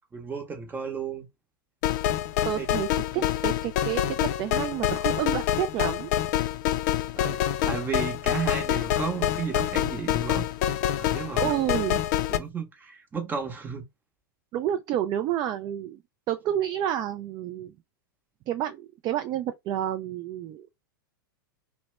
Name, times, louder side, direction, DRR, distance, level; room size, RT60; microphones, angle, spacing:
voice 1, 0.1-1.2 2.5-2.7 7.1-7.4 7.6-10.4 11.0-11.5 12.3-13.8, right 5 dB, 15° right, 0.9 m, -33 dB
sound 1, 1.8-12.4, left 12 dB, 50° left, 0.4 m, -26 dB
voice 2, 2.5-6.1 11.3-12.0 14.5-16.0 16.3-17.7 18.5-20.7, right 11 dB, 35° right, 0.3 m, -29 dB
2.8 x 2.1 x 3.1 m
hypercardioid pair, 100°, 12 cm